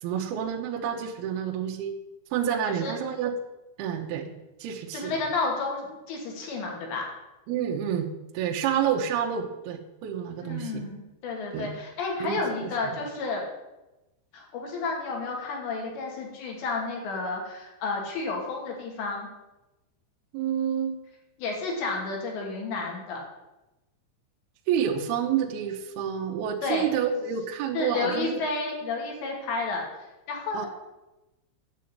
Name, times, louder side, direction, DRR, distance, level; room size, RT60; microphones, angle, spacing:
voice 1, 0.0-2.0 2.3-3.3 3.8-4.3 4.6-5.1 7.5-8.1 8.3-10.8 11.5-11.7 12.2-12.4 12.9-13.0 20.3-21.0 24.7-28.4 30.5-30.7, right 8 dB, 70° right, 1 dB, 2.5 m, -29 dB
voice 2, 4.9-7.0 10.4-13.4 14.3-19.3 21.4-23.2 26.6-26.9 27.7-29.8 30.3-30.7, left 3 dB, 65° left, 0 dB, 4.6 m, -31 dB
10.0 x 7.7 x 8.7 m, 1.0 s
omnidirectional pair, 5.6 m